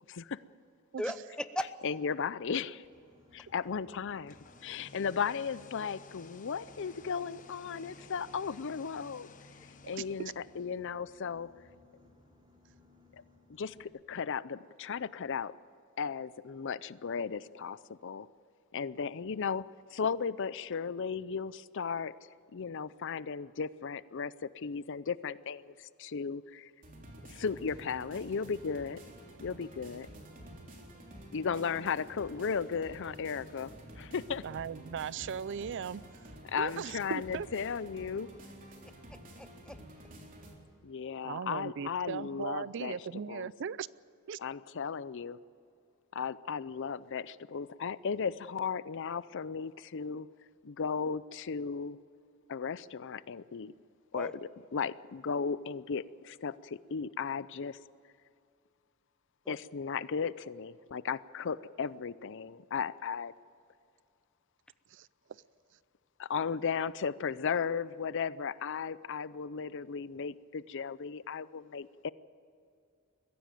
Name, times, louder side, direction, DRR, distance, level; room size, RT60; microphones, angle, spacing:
voice 1, 0.1-0.4 1.8-2.8 3.3-4.4 4.6-9.3 9.8-11.5 13.5-15.5 16.0-18.3 18.7-22.1 22.5-26.7 27.3-29.0 29.4-30.1 31.3-34.4 36.5-38.3 40.8-43.0 43.3-43.5 44.4-45.4 46.1-50.3 50.6-52.0 52.5-53.7 54.1-54.3 54.7-57.8 59.5-63.3 66.2-72.1, left 6 dB, 60° left, 18 dB, 0.5 m, -35 dB
voice 2, 1.0-1.7 30.9-31.1 39.1-39.8 54.1-54.3 59.4-59.6, equal, 5° left, 10 dB, 0.9 m, -38 dB
Boat Water vehicle, 2.8-13.8, left 1 dB, 25° right, 3.3 m, -62 dB
sound 1, 4.1-10.9, left 3 dB, 40° left, 1.0 m, -55 dB
sound 2, 26.8-40.5, right 1 dB, 40° right, 3.6 m, -50 dB
voice 3, 34.4-36.0 36.6-37.5 41.2-43.9 44.3-44.4 64.9-65.4, right 7 dB, 60° right, 20 dB, 0.4 m, -38 dB
22.0 x 15.5 x 9.2 m, 2.5 s
head